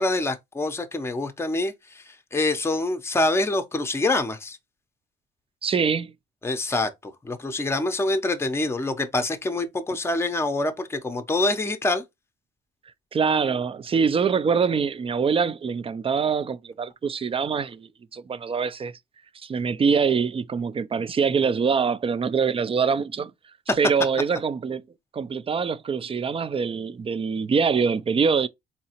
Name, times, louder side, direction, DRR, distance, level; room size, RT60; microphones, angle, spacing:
voice 1, 0.0-2.0 2.3-4.6 6.4-12.0, left 2 dB, 10° left, 0.6 m, -25 dB
voice 2, 5.6-6.1 13.1-18.9 19.4-23.3 23.8-24.8 25.1-28.5, right 6 dB, 30° right, 0.4 m, -24 dB
4.0 x 2.8 x 2.9 m
cardioid pair, 90°, 20 cm